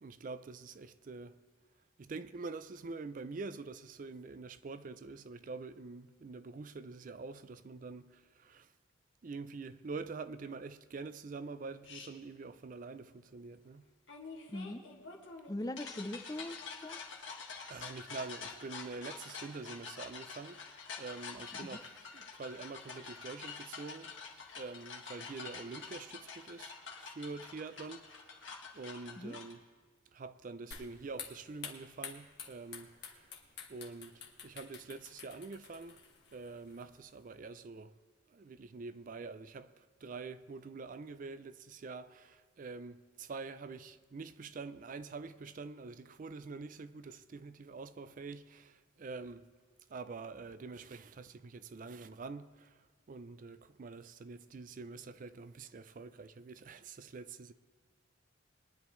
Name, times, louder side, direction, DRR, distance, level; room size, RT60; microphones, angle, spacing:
voice 1, 0.0-1.4 2.0-8.7 9.2-13.9 17.2-24.2 24.6-28.5 28.7-29.7 30.1-33.3 33.7-36.0 36.3-38.0 38.3-49.5 49.9-57.5, right 4 dB, 45° right, 0.4 m, -46 dB
sound 1, 11.8-12.1 14.1-29.5, left 5 dB, 75° left, 1.7 m, -47 dB
voice 2, 14.5-14.8 15.5-16.6 16.8-17.0 21.7-21.8 29.2-29.3, left 1 dB, 20° left, 0.5 m, -40 dB
sound 2, 30.7-37.3, left 6 dB, 60° left, 1.6 m, -50 dB
22.0 x 10.5 x 3.1 m
head